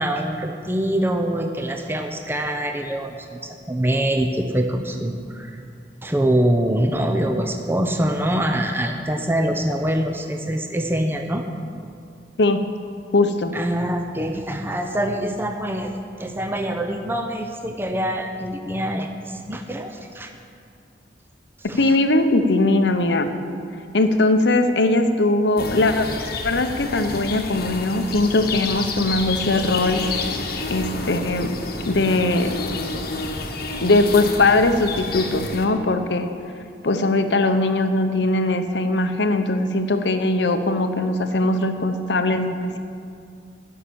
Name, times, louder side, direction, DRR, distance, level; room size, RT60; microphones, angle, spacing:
voice 1, 0.0-5.6 6.0-11.4 13.5-20.3 21.7-21.9, right 1 dB, 15° right, 4 dB, 0.6 m, -24 dB
voice 2, 13.1-13.6 21.8-23.3 23.9-26.1 26.4-30.1 30.7-31.6 31.9-32.6 33.8-36.3 36.8-42.8, left 2 dB, 80° left, 8 dB, 0.8 m, -20 dB
sound 1, 25.6-35.7, left 3 dB, 60° left, 1.1 m, -29 dB
12.5 x 5.9 x 8.5 m, 2.3 s
head